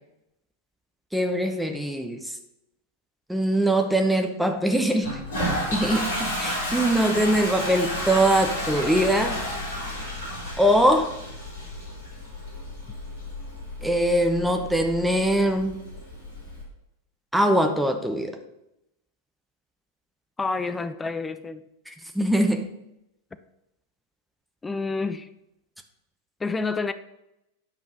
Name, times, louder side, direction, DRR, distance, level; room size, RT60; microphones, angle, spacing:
voice 1, 1.1-2.3 3.3-5.2 5.7-9.4 10.6-11.1 13.8-15.8 17.3-18.4 21.9-22.7, right 1 dB, ahead, 5 dB, 0.9 m, -22 dB
Toilet flush, 5.0-16.6, left 1 dB, 60° left, 3.7 m, -32 dB
voice 2, 20.4-21.6 24.6-25.3 26.4-26.9, left 4 dB, 15° left, 11 dB, 0.6 m, -28 dB
9.4 x 5.1 x 5.1 m, 0.86 s
figure-of-eight pair, 90°, 0 cm